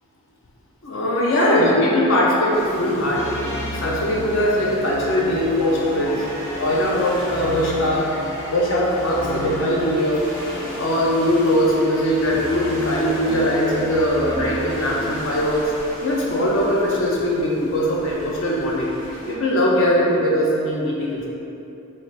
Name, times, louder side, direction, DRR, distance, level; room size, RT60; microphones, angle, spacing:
voice 1, 0.8-3.2 3.7-6.2 6.6-8.1 8.5-10.2 10.8-15.6 16.0-18.9 19.3-21.3, equal, 60° left, -5 dB, 0.5 m, -20 dB
sound 1, 2.5-19.3, left 1 dB, 80° left, 1.4 m, -38 dB
sound 2, 3.1-15.7, left 1 dB, 10° left, 0.5 m, -33 dB
3.3 x 2.4 x 4.1 m, 2.9 s
head